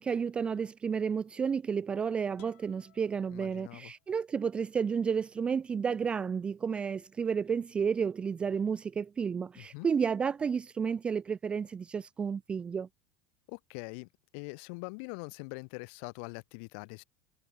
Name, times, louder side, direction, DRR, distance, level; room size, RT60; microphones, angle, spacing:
voice 1, 0.0-12.9, right 6 dB, 15° right, 0.4 m, -31 dB
sound 1, 2.4-4.3, left 19 dB, 80° left, 4.4 m, -62 dB
voice 2, 3.3-3.9 9.6-9.9 13.5-17.0, left 38 dB, 60° left, 1.9 m, -43 dB
supercardioid pair, 165°, 7 cm